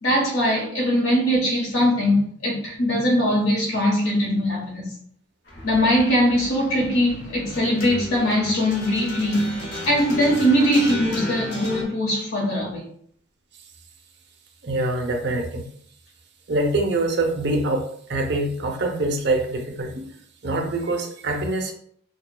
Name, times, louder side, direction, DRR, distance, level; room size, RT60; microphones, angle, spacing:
voice 1, 0.0-4.9 5.6-12.8, equal, 85° left, -4 dB, 1.2 m, -21 dB
sound 1, 5.5-11.8, left 1 dB, 55° left, 0.8 m, -34 dB
voice 2, 14.6-15.7 16.5-20.1 20.4-21.7, right 2 dB, 55° right, 2 dB, 0.6 m, -24 dB
6.3 x 2.2 x 2.2 m, 0.62 s
head